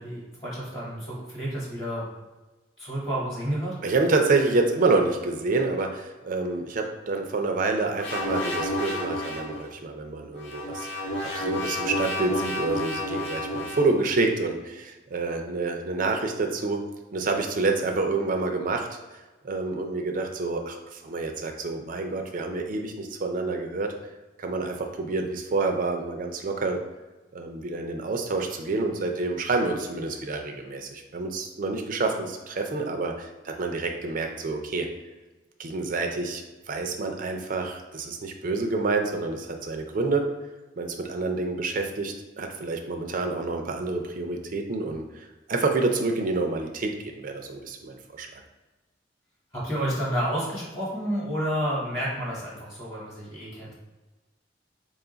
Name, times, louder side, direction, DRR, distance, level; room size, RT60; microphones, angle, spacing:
voice 1, 0.0-2.1 2.8-3.7 49.5-53.7, equal, 25° left, -7 dB, 1.1 m, -30 dB
voice 2, 3.8-18.9 19.4-23.9 24.4-26.8 27.3-34.9 35.6-36.4 36.7-40.3 40.8-48.4, right 3 dB, 50° right, 4 dB, 0.4 m, -28 dB
sound 1, 8.0-9.6 10.4-14.0, left 1 dB, 90° left, 0.9 m, -30 dB
3.6 x 2.3 x 3.8 m, 1.2 s
head